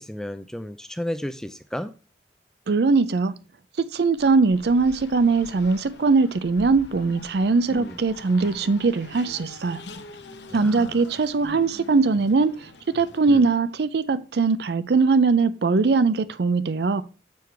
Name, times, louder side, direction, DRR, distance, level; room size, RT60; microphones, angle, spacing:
voice 1, 0.0-1.9 7.7-8.0 10.5-10.9 13.3-13.5, left 1 dB, 5° left, 0.4 m, -33 dB
voice 2, 2.7-3.3 3.8-9.8 10.5-17.0, right 4 dB, 65° right, 0.5 m, -21 dB
Race car auto racing, 4.1-13.8, left 3 dB, 80° left, 0.9 m, -44 dB
7.0 x 4.7 x 4.6 m
head